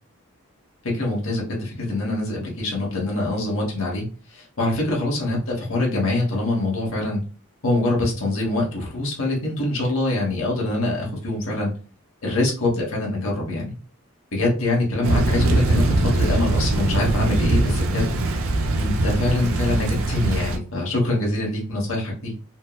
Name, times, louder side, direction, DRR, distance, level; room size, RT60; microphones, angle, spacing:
voice 1, 0.8-4.0 4.3-7.2 7.6-11.7 12.2-13.7 14.3-18.1 18.8-22.3, left 2 dB, 70° left, -2 dB, 1.2 m, -24 dB
Thunder / Rain, 15.0-20.6, right 2 dB, 70° right, 0.4 m, -22 dB
4.3 x 2.0 x 2.2 m, 0.38 s
head